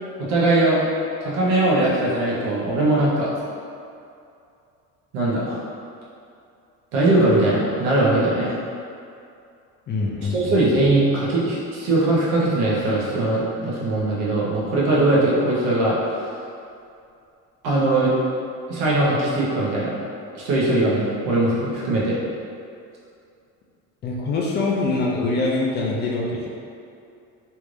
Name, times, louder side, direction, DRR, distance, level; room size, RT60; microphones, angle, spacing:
voice 1, 0.2-0.8 1.2-3.3 5.1-5.6 6.9-8.5 10.3-16.2 17.6-18.1 18.7-19.9 20.3-22.2, right 2 dB, 80° right, -6 dB, 1.1 m, -20 dB
voice 2, 9.9-10.9 24.0-26.5, left 3 dB, 35° left, -3 dB, 0.4 m, -24 dB
3.3 x 2.6 x 3.2 m, 2.5 s
cardioid pair, 150°, 32 cm